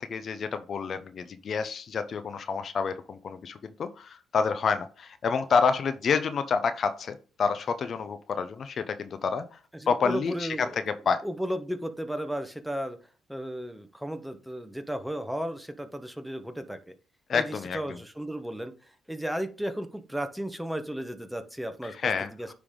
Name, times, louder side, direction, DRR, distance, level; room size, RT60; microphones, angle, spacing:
voice 1, 0.0-9.6 9.9-11.2 17.3-17.8 21.8-22.5, left 5 dB, 55° left, 10 dB, 0.6 m, -28 dB
voice 2, 9.7-10.8 11.2-13.0 13.3-16.9 17.3-18.7 19.1-22.5, equal, 5° right, 8 dB, 1.1 m, -34 dB
9.6 x 3.4 x 3.8 m, 0.37 s
supercardioid pair, 65°, 0 cm